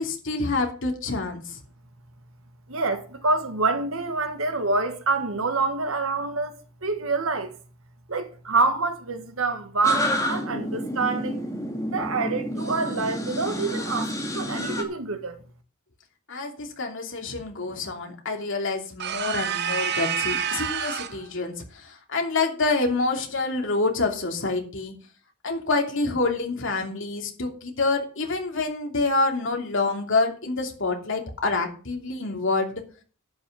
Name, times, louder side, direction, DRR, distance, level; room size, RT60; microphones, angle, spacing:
voice 1, 0.0-1.6 16.3-24.9 25.4-32.8, left 3 dB, 60° left, 2.8 m, -27 dB
voice 2, 2.7-6.5 6.8-7.5 8.1-11.4 11.8-15.4, right 3 dB, 70° right, 1.8 m, -26 dB
sound 1, 9.8-14.8, left 1 dB, 15° left, 1.9 m, -29 dB
sound 2, 19.0-21.3, right 8 dB, 50° right, 0.9 m, -28 dB
11.0 x 6.3 x 7.1 m
head